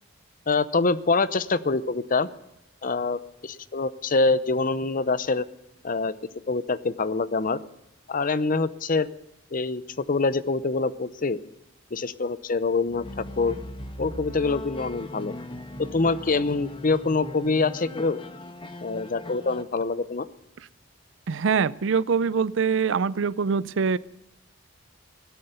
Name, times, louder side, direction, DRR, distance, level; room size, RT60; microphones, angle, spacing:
voice 1, 0.5-2.3 2.8-5.4 5.8-6.1 6.5-7.6 8.1-9.1 9.5-11.4 11.9-13.6 14.0-15.3 15.8-18.2 18.8-20.3, left 3 dB, 45° left, 16 dB, 0.7 m, -25 dB
sound 1, 12.9-19.6, left 1 dB, 25° left, 1.2 m, -39 dB
voice 2, 21.3-24.0, right 5 dB, 70° right, 19 dB, 0.5 m, -24 dB
17.0 x 12.5 x 6.8 m, 0.88 s
head